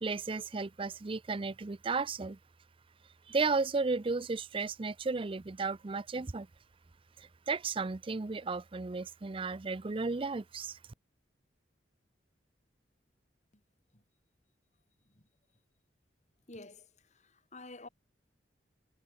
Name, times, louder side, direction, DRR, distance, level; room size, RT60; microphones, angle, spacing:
voice 1, 0.0-2.4 3.3-6.5 7.2-10.8, right 4 dB, 30° right, 0.5 m, -34 dB
voice 2, 16.5-17.9, left 2 dB, 40° left, 4.5 m, -51 dB
head